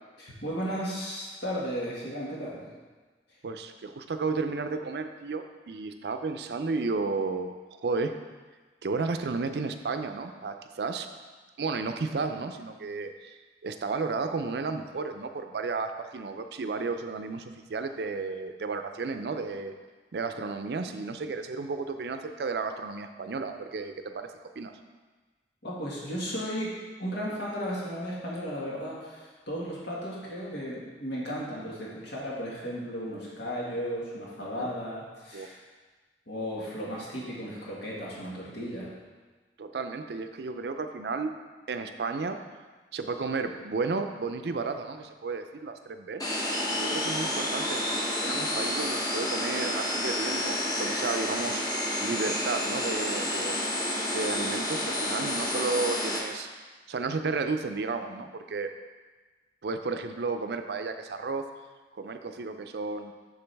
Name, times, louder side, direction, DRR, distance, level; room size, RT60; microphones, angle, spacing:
voice 1, 0.2-2.6 25.6-26.7 27.0-35.6 36.3-38.9, equal, 75° left, -5 dB, 1.8 m, -35 dB
voice 2, 3.4-7.6 7.8-8.1 8.8-11.1 11.6-19.7 20.1-24.3 24.6-24.7 34.6-34.7 35.3-35.5 39.6-41.3 41.7-42.4 42.9-46.3 46.7-47.9 48.2-51.6 52.0-53.6 54.1-56.5 56.9-58.7 59.6-61.5 61.9-63.1, right 4 dB, 65° right, 7 dB, 0.4 m, -33 dB
sound 1, 46.2-56.2, left 1 dB, 20° left, 0.9 m, -30 dB
7.2 x 7.0 x 3.4 m, 1.3 s
head